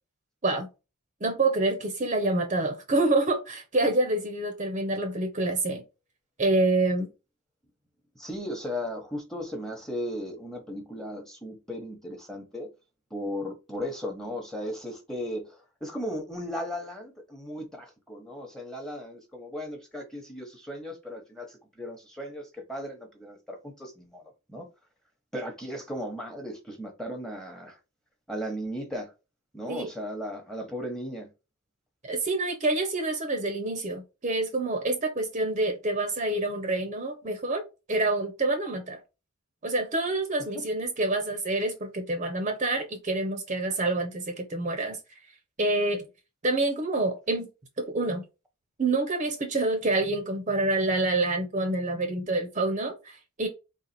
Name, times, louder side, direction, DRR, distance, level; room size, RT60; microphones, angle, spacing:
voice 1, 1.2-5.8 6.4-7.1 29.7-29.9 32.0-39.0 39.6-45.0 45.6-46.0 46.4-47.5 47.8-48.2 48.8-53.5, right 2 dB, 35° right, 0.7 m, -27 dB
voice 2, 8.1-12.7 13.1-24.2 24.5-24.7 25.3-27.8 28.3-29.1 29.5-31.3 40.5-40.6, equal, 5° left, 1.0 m, -36 dB
4.0 x 2.3 x 4.2 m
head